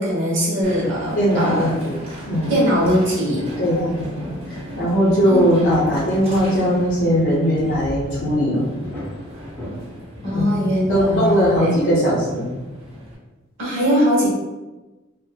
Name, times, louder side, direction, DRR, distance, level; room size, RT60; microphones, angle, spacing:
voice 1, 0.0-1.8 2.5-3.5 5.2-5.5 10.2-11.8 13.6-14.3, equal, 60° right, -5 dB, 1.0 m, -20 dB
Train, 0.6-13.2, equal, 30° right, 0.6 m, -36 dB
voice 2, 1.1-2.0 2.3-2.5 3.6-4.3 4.8-8.6 10.3-10.6 10.9-12.5, equal, 60° left, -8 dB, 0.6 m, -19 dB
sound 1, 6.7-11.4, equal, 10° left, 0.8 m, -38 dB
2.7 x 2.4 x 2.2 m, 1.1 s
head